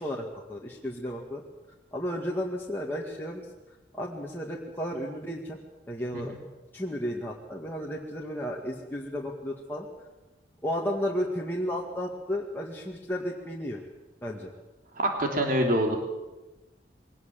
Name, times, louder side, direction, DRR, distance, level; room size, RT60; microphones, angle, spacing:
voice 1, 0.0-1.4 1.9-3.4 3.9-5.6 5.9-6.4 6.7-9.9 10.6-13.8 14.2-14.5, equal, 10° left, -3 dB, 2.0 m, -33 dB
voice 2, 15.0-16.0, right 1 dB, 55° right, 2 dB, 3.2 m, -26 dB
22.0 x 18.5 x 7.6 m, 1.0 s
head